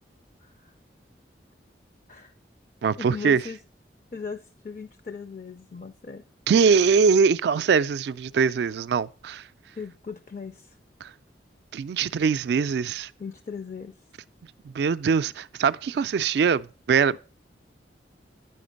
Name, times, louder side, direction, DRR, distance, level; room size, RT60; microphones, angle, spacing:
voice 1, 0.4-0.7 2.1-2.3 3.0-3.6 4.1-6.2 9.8-10.8 13.2-13.9, left 5 dB, 45° left, 0.4 m, -38 dB
voice 2, 2.8-3.4 6.5-9.5 11.0-11.1 11.7-13.1 14.6-17.2, right 5 dB, 65° right, 0.3 m, -22 dB
9.1 x 5.0 x 5.1 m
head